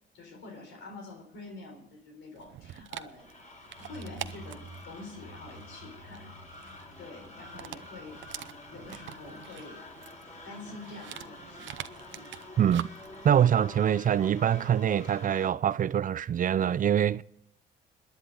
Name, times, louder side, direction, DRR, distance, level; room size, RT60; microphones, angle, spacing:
voice 1, 0.1-3.3 3.8-9.9 10.4-11.7 12.1-12.4, left 3 dB, 75° left, 3.9 m, -47 dB
Dog, 2.4-15.2, right 12 dB, 75° right, 0.7 m, -46 dB
sound 1, 3.2-15.5, left 2 dB, 35° left, 4.7 m, -48 dB
sound 2, 3.7-10.3, right 2 dB, 20° left, 3.2 m, -51 dB
voice 2, 12.6-12.9 13.2-17.2, right 9 dB, 45° right, 0.5 m, -24 dB
27.5 x 10.5 x 3.8 m
cardioid pair, 90°, 20 cm